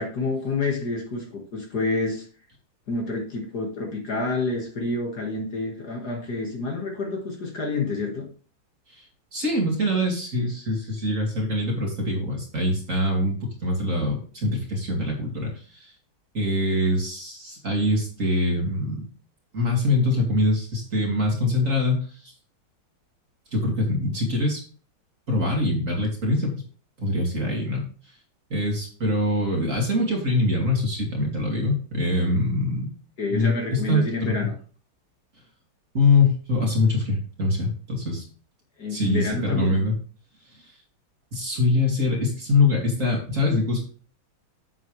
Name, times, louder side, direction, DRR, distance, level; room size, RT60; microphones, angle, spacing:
voice 1, 0.0-2.3 2.9-8.3 33.2-34.5 38.8-39.8, left 3 dB, 50° left, 1 dB, 2.1 m, -28 dB
voice 2, 9.3-15.9 16.3-19.0 19.5-22.3 23.5-24.6 25.3-26.6 27.0-27.8 28.5-32.9 33.3-34.4 35.9-38.2 38.9-39.9 41.3-43.8, left 2 dB, 35° right, 0 dB, 2.6 m, -24 dB
8.7 x 7.4 x 3.2 m, 0.40 s
omnidirectional pair, 2.3 m